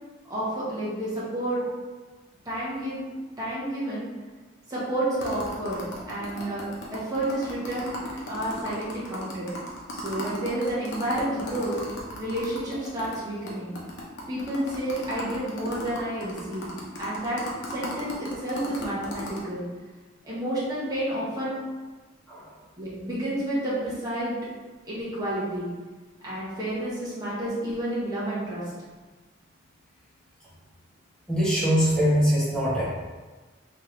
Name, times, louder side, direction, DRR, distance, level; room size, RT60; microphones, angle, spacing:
voice 1, 0.3-1.6 2.4-3.0 3.4-4.1 4.7-8.0 8.2-9.5 9.9-11.8 12.2-13.7 14.3-16.7 17.0-19.6 20.2-21.6 22.8-24.4 24.8-25.7 26.2-28.6, right 1 dB, 20° right, -9 dB, 1.4 m, -30 dB
sound 1, 5.2-13.2 13.5-13.6 13.8-19.4, left 1 dB, 70° left, 0.9 m, -37 dB
voice 2, 31.3-32.8, equal, 5° left, -9 dB, 1.2 m, -22 dB
3.7 x 3.3 x 3.2 m, 1.3 s
head